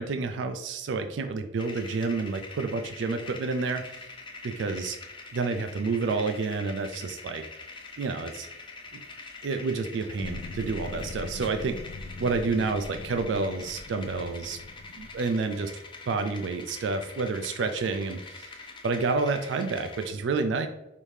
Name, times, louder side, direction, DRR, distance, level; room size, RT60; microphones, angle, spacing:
voice 1, 0.0-4.1 4.4-5.0 5.3-7.4 8.0-8.5 8.9-9.0 9.4-11.8 12.2-14.6 14.9-15.7 16.1-20.7, right 4 dB, 80° right, 7 dB, 0.4 m, -29 dB
sound 1, 1.6-20.1, left 3 dB, 25° left, 0.5 m, -44 dB
sound 2, 10.2-15.5, left 3 dB, 85° left, 0.3 m, -42 dB
5.1 x 2.7 x 3.1 m, 0.88 s
head